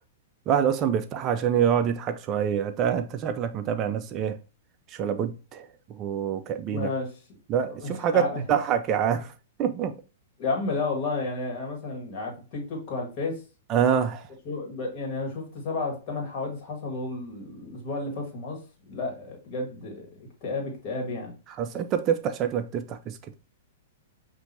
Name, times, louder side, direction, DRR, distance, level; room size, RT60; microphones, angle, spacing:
voice 1, 0.5-4.4 4.9-5.7 6.0-6.9 7.5-9.3 9.6-9.9 13.7-14.2 21.6-23.3, right 8 dB, 30° right, 0.4 m, -26 dB
voice 2, 6.6-7.1 7.7-8.4 10.4-13.3 14.4-18.6 18.8-21.3, left 3 dB, 40° left, 1.7 m, -32 dB
5.7 x 2.7 x 2.7 m
hypercardioid pair, 125°, 0 cm